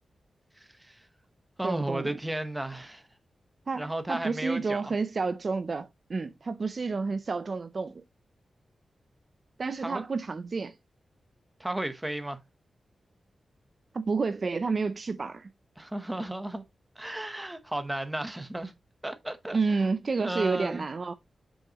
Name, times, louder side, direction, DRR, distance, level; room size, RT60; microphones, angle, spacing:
voice 1, 0.6-1.0 1.6-3.0 3.7-4.9 9.8-10.0 11.6-12.4 15.8-16.6 17.0-18.7 19.0-19.9 20.2-20.9, right 1 dB, 10° right, 0.9 m, -34 dB
voice 2, 1.6-2.1 3.7-8.0 9.6-10.7 13.9-15.5 19.5-21.1, right 4 dB, 40° right, 0.4 m, -30 dB
7.7 x 6.3 x 2.9 m
wide cardioid pair, 160°, 0 cm